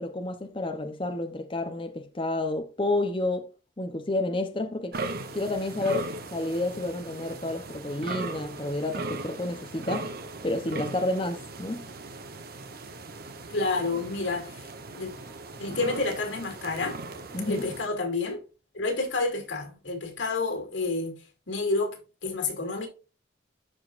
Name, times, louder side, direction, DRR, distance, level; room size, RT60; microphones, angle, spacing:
voice 1, 0.0-3.5 3.8-5.0 5.3-10.1 10.4-11.9 17.3-17.7, left 2 dB, 25° left, 0.8 m, -30 dB
sound 1, 4.9-17.9, right 2 dB, 55° right, 1.0 m, -38 dB
voice 2, 13.5-15.1 15.6-17.0 17.5-18.4 18.7-21.1 21.5-22.9, left 3 dB, 85° left, 2.6 m, -29 dB
12.5 x 5.1 x 2.5 m
head